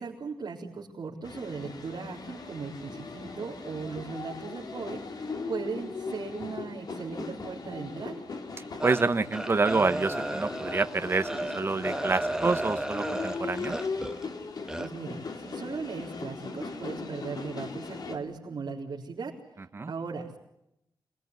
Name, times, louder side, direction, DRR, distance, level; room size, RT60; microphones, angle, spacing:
voice 1, 0.0-8.2 14.8-19.4 19.9-20.4, right 4 dB, 60° right, -4 dB, 4.0 m, -38 dB
sound 1, 1.2-18.2, left 4 dB, 55° left, 3.6 m, -39 dB
sound 2, 8.8-14.2 14.7-14.9, right 1 dB, 5° right, 1.3 m, -33 dB
voice 2, 8.8-13.8 19.7-19.9, right 3 dB, 30° right, 10 dB, 1.2 m, -27 dB
27.0 x 20.5 x 9.6 m, 0.81 s
wide cardioid pair, 155°, 8 cm